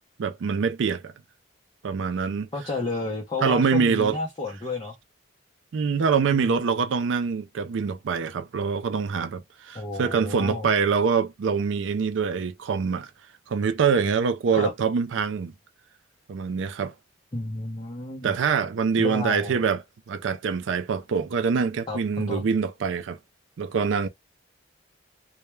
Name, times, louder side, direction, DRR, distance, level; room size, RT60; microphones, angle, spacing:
voice 1, 0.2-1.1 1.8-2.5 3.4-4.2 5.7-13.1 13.5-15.5 16.3-16.9 18.2-23.2 23.6-24.1, right 5 dB, 75° right, 0.4 m, -25 dB
voice 2, 2.5-5.0 6.3-6.5 9.7-10.7 14.5-14.7 17.3-18.4 19.0-19.6 21.9-22.4, left 2 dB, 25° left, 0.6 m, -31 dB
2.2 x 2.1 x 3.0 m
head